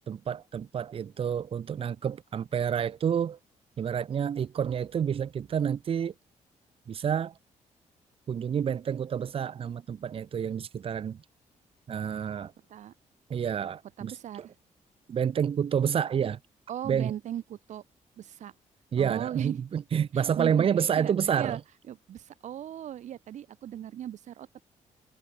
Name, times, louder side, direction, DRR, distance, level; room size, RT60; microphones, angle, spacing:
voice 1, 0.1-3.4 3.8-6.1 6.9-7.4 8.3-11.2 11.9-12.5 13.3-14.1 14.4-14.5 15.1-16.4 16.8-17.1 18.9-21.6, right 8 dB, 45° right, 2.0 m, -29 dB
voice 2, 14.0-14.5 16.7-17.8 18.2-18.5 18.9-19.6 20.4-21.6 21.9-24.7, right 11 dB, 65° right, 2.0 m, -38 dB
cardioid pair, 140°, 13 cm